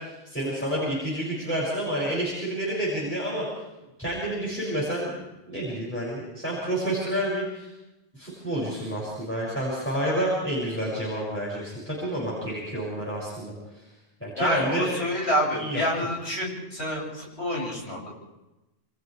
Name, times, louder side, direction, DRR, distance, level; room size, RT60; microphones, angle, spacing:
voice 1, 0.0-3.5 4.0-7.7 8.1-13.5 14.2-15.0 15.5-15.8, right 1 dB, 10° left, -7 dB, 7.1 m, -29 dB
voice 2, 14.4-18.1, equal, 90° left, -3 dB, 7.8 m, -28 dB
29.5 x 25.5 x 3.5 m, 0.99 s
omnidirectional pair, 1.1 m